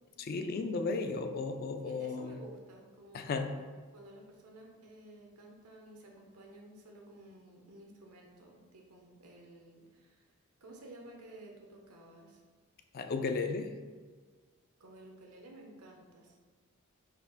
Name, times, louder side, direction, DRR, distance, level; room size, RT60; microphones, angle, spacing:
voice 1, 0.2-2.4 3.1-3.5 12.9-13.7, left 4 dB, 45° left, 7 dB, 0.3 m, -34 dB
voice 2, 1.8-3.7 3.9-10.2 10.6-12.4 14.8-16.3, right 1 dB, 85° right, 0 dB, 0.8 m, -53 dB
4.3 x 2.5 x 3.9 m, 1.5 s
head